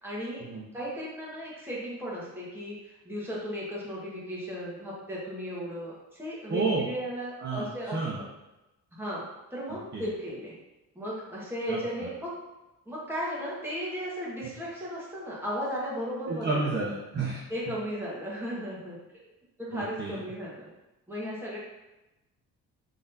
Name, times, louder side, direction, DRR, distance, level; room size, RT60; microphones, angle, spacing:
voice 1, 0.0-0.5 0.7-8.0 9.0-9.3 9.5-10.5 11.0-12.3 12.9-16.6 17.5-19.0 19.6-20.7 21.1-21.6, equal, 5° right, -7 dB, 2.0 m, -35 dB
voice 2, 6.5-6.8 7.4-8.2 9.9-10.0 11.7-12.1 16.3-17.4 19.7-20.2, right 3 dB, 30° right, -5 dB, 1.0 m, -31 dB
6.6 x 3.9 x 4.1 m, 1.0 s
cardioid pair, 145°, 33 cm